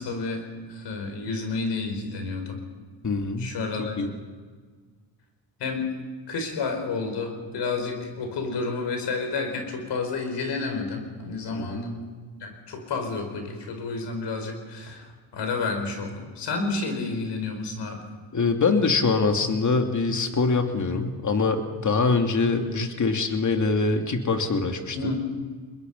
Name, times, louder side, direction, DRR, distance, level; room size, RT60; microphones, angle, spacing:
voice 1, 0.0-2.6 3.4-4.0 5.6-5.9 6.3-12.1 12.4-18.0 24.9-25.2, left 4 dB, 70° left, 5 dB, 4.9 m, -30 dB
voice 2, 3.0-3.5 3.8-4.1 11.5-11.8 18.3-25.1, left 4 dB, 45° left, 4 dB, 2.8 m, -24 dB
22.5 x 21.5 x 5.5 m, 1.5 s
supercardioid pair, 70°, 43 cm